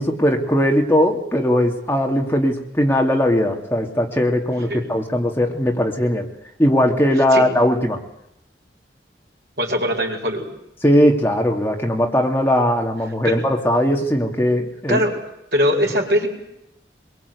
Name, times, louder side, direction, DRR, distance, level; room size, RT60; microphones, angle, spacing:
voice 1, 0.0-6.3 6.6-8.0 10.8-15.0, equal, 15° left, 1 dB, 2.3 m, -19 dB
voice 2, 9.6-10.5 13.2-13.4 14.9-15.2 15.5-16.3, equal, 65° right, 1 dB, 5.1 m, -21 dB
23.5 x 23.0 x 8.2 m, 0.81 s
head